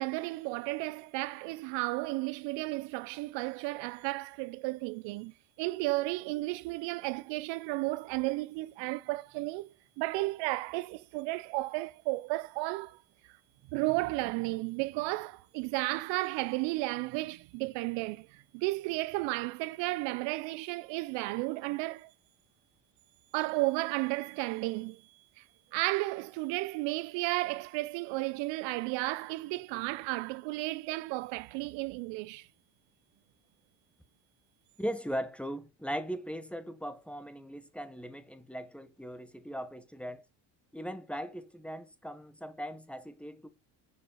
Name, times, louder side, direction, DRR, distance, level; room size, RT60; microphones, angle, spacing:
voice 1, 0.0-5.3 5.6-13.0 13.7-22.1 23.3-25.0 25.4-25.5 25.7-32.5, right 21 dB, 75° right, 0.5 m, -33 dB
voice 2, 34.8-40.2 40.7-43.5, equal, 5° left, 1.1 m, -39 dB
7.0 x 5.0 x 5.5 m
cardioid pair, 100°, 44 cm